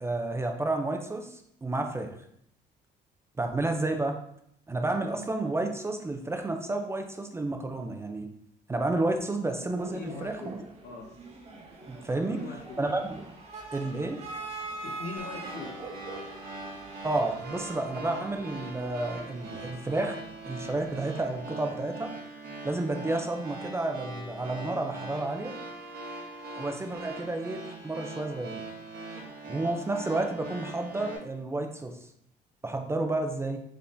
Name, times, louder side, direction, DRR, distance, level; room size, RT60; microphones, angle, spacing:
voice 1, 0.0-2.1 3.4-4.1 4.7-8.3 8.7-10.6 11.9-12.4 12.8-13.2 13.7-14.2 17.0-20.2 20.5-22.1 22.6-25.5 26.6-28.6 29.5-31.9 32.6-33.6, right 2 dB, 15° right, 4 dB, 0.4 m, -31 dB
sound 1, 9.8-21.0, right 3 dB, 40° right, 0.9 m, -44 dB
voice 2, 9.9-10.5 10.8-11.1 12.3-12.8 14.8-15.8, left 4 dB, 70° left, 1 dB, 1.0 m, -41 dB
sound 2, 15.2-31.2, right 2 dB, 65° right, 1.2 m, -42 dB
4.6 x 3.5 x 2.5 m, 0.71 s
cardioid pair, 110°, 17 cm